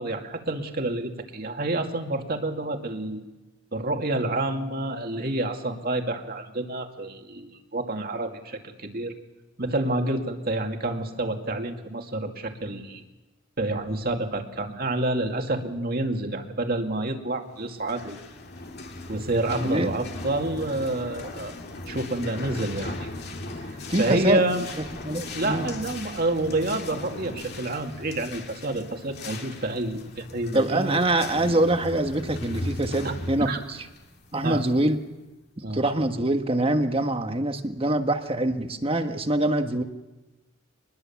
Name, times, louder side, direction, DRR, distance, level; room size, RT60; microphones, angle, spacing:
voice 1, 0.0-3.2 3.7-9.1 9.6-13.0 13.6-18.2 19.1-21.5 21.9-23.1 24.0-24.7 25.3-31.0 33.0-33.1 33.4-33.6 34.4-34.6 35.6-35.8, right 2 dB, 45° right, 4 dB, 2.3 m, -28 dB
sound 1, 17.7-35.1, left 2 dB, 50° left, 2.2 m, -38 dB
voice 2, 19.6-19.9 23.9-24.4 25.0-25.7 30.5-33.8 34.3-35.0 35.6-39.8, right 1 dB, 25° right, 6 dB, 1.5 m, -24 dB
23.5 x 21.0 x 7.2 m, 1.1 s
head